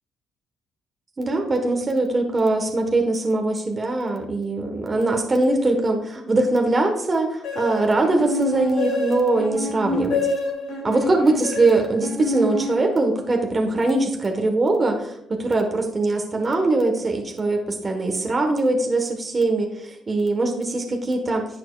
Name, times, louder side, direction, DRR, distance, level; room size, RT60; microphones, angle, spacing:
voice 1, 1.2-10.3 10.8-21.5, right 2 dB, 30° right, 3 dB, 1.4 m, -22 dB
sound 1, 7.4-13.3, left 2 dB, 90° left, 2.9 m, -28 dB
11.0 x 7.5 x 2.4 m, 0.74 s
cardioid pair, 90°, 0 cm